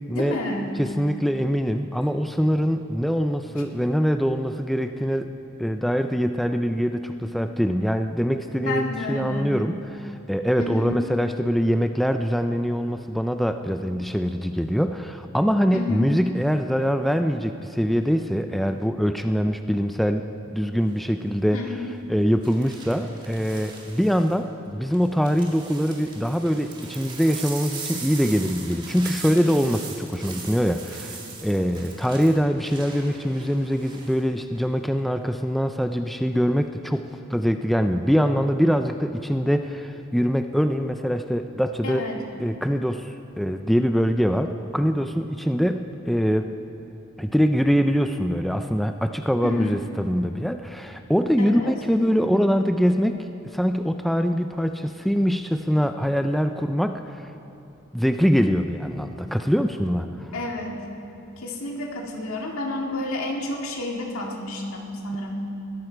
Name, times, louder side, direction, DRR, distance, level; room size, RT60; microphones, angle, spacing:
voice 1, 0.1-0.7 8.5-9.5 10.6-10.9 15.7-16.1 21.5-21.8 41.8-42.2 49.4-49.8 51.5-51.7 60.3-60.8 61.4-65.5, left 2 dB, 85° left, 0 dB, 2.0 m, -30 dB
voice 2, 0.8-5.3 5.6-21.6 22.1-37.0 37.3-42.0 42.4-46.5 47.2-53.3 53.5-57.3 57.9-60.3, equal, ahead, 7 dB, 0.3 m, -23 dB
sound 1, 20.8-21.1 22.4-24.3 24.9-34.2 34.5-35.0, right 4 dB, 20° right, 1.9 m, -40 dB
20.5 x 12.5 x 4.6 m, 2.8 s
head